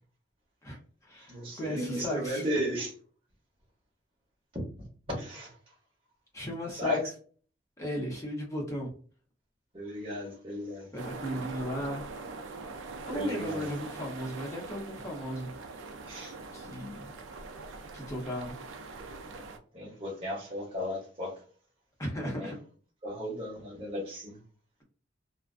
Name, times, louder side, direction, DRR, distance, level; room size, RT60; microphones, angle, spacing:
voice 1, 0.6-2.4 6.3-7.0 7.8-8.9 10.9-12.0 13.0-15.5 16.5-17.2 17.9-18.6 22.0-22.6, equal, 15° left, -2 dB, 0.7 m, -36 dB
voice 2, 1.3-2.9 5.1-5.7 6.7-7.1 9.7-10.9 13.1-13.7 16.1-16.4 19.7-21.4 22.2-22.5 23.0-24.4, equal, 30° right, -4 dB, 1.0 m, -35 dB
sound 1, 11.0-19.6, right 3 dB, 85° right, 0.4 m, -43 dB
2.3 x 2.1 x 2.4 m, 0.43 s
head